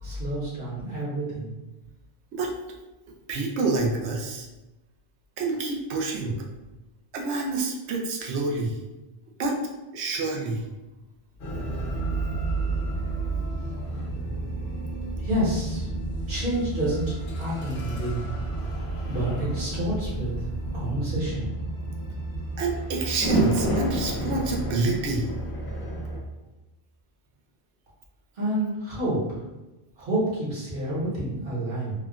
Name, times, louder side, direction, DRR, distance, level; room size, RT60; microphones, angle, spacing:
voice 1, 0.0-1.5 15.2-15.9 16.3-18.2 19.1-20.4 20.7-21.5 28.4-29.4 30.0-31.9, right 1 dB, 55° right, -7 dB, 1.2 m, -29 dB
voice 2, 3.3-4.5 5.4-6.4 7.1-8.8 9.4-9.6 9.9-10.7 22.6-25.3, right 3 dB, 85° right, 0 dB, 0.9 m, -27 dB
sound 1, 11.4-26.2, right 2 dB, 70° left, 0.9 m, -30 dB
3.5 x 2.2 x 2.3 m, 1.1 s
omnidirectional pair, 1.1 m